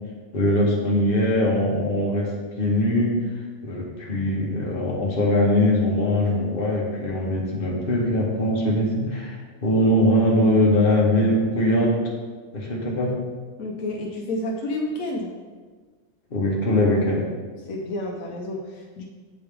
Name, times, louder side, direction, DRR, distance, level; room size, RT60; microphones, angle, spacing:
voice 1, 0.3-2.3 2.6-3.1 3.6-11.9 12.5-13.1 16.3-17.2, left 1 dB, 45° left, -3 dB, 1.3 m, -21 dB
voice 2, 13.6-15.3 17.6-19.0, left 1 dB, 80° left, 0 dB, 1.1 m, -30 dB
8.5 x 3.4 x 3.4 m, 1.4 s
omnidirectional pair, 1.4 m